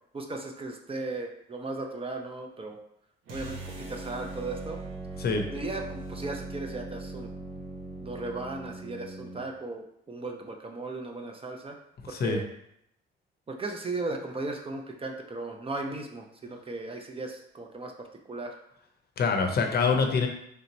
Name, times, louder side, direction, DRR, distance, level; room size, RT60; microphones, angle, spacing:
voice 1, 0.1-2.8 3.3-4.8 5.5-7.3 8.0-11.8 12.0-12.4 13.5-18.6, right 2 dB, 30° right, 3 dB, 0.6 m, -36 dB
sound 1, 3.3-9.5, right 2 dB, 85° right, 0.8 m, -40 dB
voice 2, 19.2-20.3, left 4 dB, 50° left, 4 dB, 0.6 m, -25 dB
3.4 x 2.9 x 3.9 m, 0.75 s
cardioid pair, 90°, 20 cm